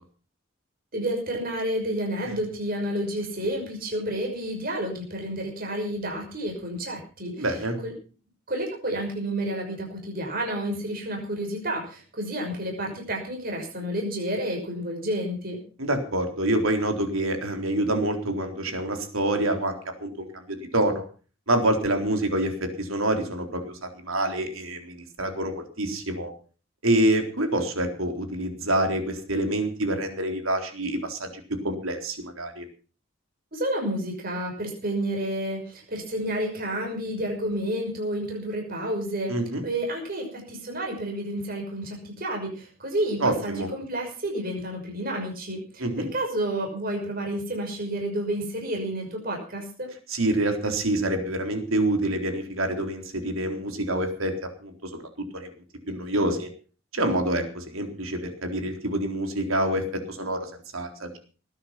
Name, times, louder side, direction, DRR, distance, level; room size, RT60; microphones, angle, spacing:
voice 1, 0.9-7.5 7.8-7.9 8.5-15.6 33.5-39.3 39.6-49.9, right 1 dB, 45° right, 1 dB, 5.9 m, -30 dB
voice 2, 7.4-7.8 15.8-21.1 21.5-26.3 26.8-31.3 31.6-32.6 39.3-39.6 43.2-43.7 45.8-46.1 50.1-54.3 54.6-55.0 55.3-55.5 55.9-56.5 56.9-61.2, right 1 dB, 85° right, 5 dB, 4.0 m, -27 dB
19.5 x 10.5 x 6.0 m, 0.38 s
head